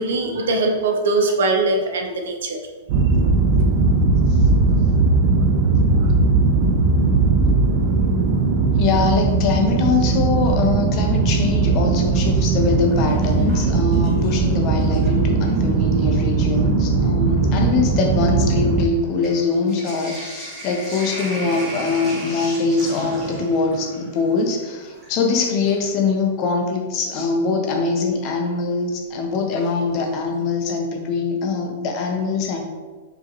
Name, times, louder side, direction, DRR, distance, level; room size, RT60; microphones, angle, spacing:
voice 1, 0.0-2.6, right 2 dB, 70° right, 3 dB, 0.7 m, -21 dB
sound 1, 2.9-18.9, right 3 dB, 35° right, 0.3 m, -18 dB
voice 2, 8.8-32.6, left 4 dB, 25° left, 2 dB, 0.5 m, -23 dB
Sink (filling or washing), 12.4-14.5 14.8-15.6 16.4-16.5 16.8-25.9 27.7-27.8 29.6-30.0 30.4-30.5 30.7-30.8, equal, 10° right, 1.0 m, -36 dB
4.7 x 2.9 x 2.8 m, 1.3 s
supercardioid pair, 180°, 0 cm